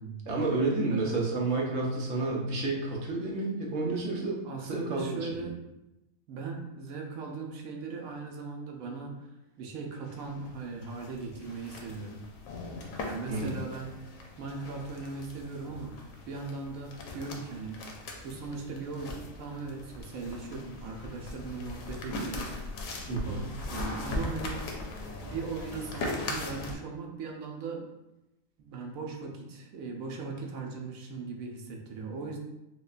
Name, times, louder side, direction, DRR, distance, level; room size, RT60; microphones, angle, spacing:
voice 1, 0.3-5.5 13.3-13.5 23.1-23.4, right 3 dB, 65° right, -2 dB, 1.1 m, -30 dB
voice 2, 4.4-5.6 6.3-9.3 9.6-12.2 13.0-13.9 14.4-16.0 16.3-17.8 18.2-24.7 25.2-27.9 28.6-32.4, right 4 dB, 85° right, 1 dB, 1.1 m, -39 dB
sound 1, 10.1-26.7, left 2 dB, 75° left, 1.0 m, -40 dB
5.0 x 2.2 x 2.4 m, 0.93 s
omnidirectional pair, 1.4 m